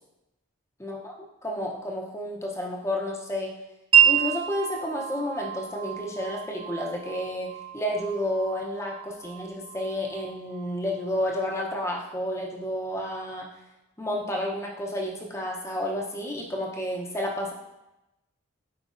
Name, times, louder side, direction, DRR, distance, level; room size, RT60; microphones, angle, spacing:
voice 1, 0.8-1.1 1.4-3.5 4.0-13.5 14.0-17.5, left 1 dB, 15° left, -1 dB, 0.6 m, -31 dB
Wind chime, 3.9-11.6, right 9 dB, 25° right, 0.3 m, -28 dB
9.0 x 4.5 x 2.5 m, 0.94 s
head